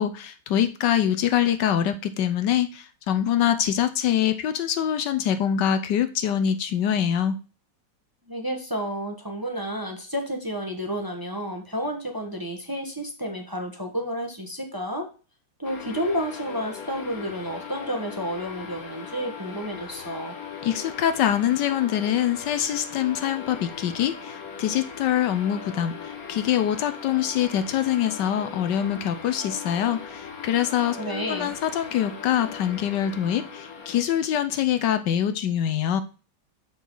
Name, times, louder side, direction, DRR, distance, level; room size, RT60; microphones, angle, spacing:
voice 1, 0.0-7.4 20.6-36.0, left 10 dB, 75° left, 10 dB, 1.3 m, -24 dB
voice 2, 8.3-15.1 15.6-20.3 31.0-31.5, equal, 15° right, 3 dB, 1.2 m, -31 dB
sound 1, 15.6-34.0, left 6 dB, 55° left, 1.6 m, -39 dB
7.1 x 6.4 x 3.8 m, 0.34 s
omnidirectional pair, 2.0 m